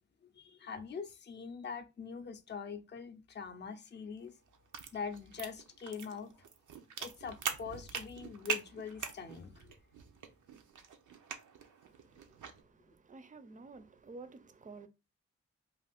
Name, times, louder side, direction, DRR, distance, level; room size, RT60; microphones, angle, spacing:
voice 1, 0.2-4.4 4.9-6.3 7.0-9.7, left 6 dB, 35° left, 0.5 m, -43 dB
sound 1, 4.2-12.6, right 7 dB, 85° right, 0.5 m, -43 dB
voice 2, 11.8-14.9, right 3 dB, 25° right, 0.5 m, -52 dB
2.5 x 2.3 x 3.4 m
cardioid pair, 50°, 30 cm